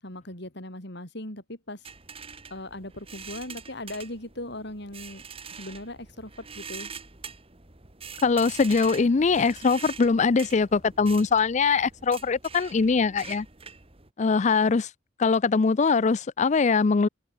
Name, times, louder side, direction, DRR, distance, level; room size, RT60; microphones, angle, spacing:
voice 1, 0.0-1.8 2.5-5.2 5.6-6.9, left 1 dB, 60° left, 7.4 m, -38 dB
sound 1, 1.8-14.1, right 6 dB, 30° right, 2.2 m, -44 dB
voice 2, 8.2-13.5 14.2-14.9 15.2-17.1, left 4 dB, 35° left, 0.4 m, -22 dB
head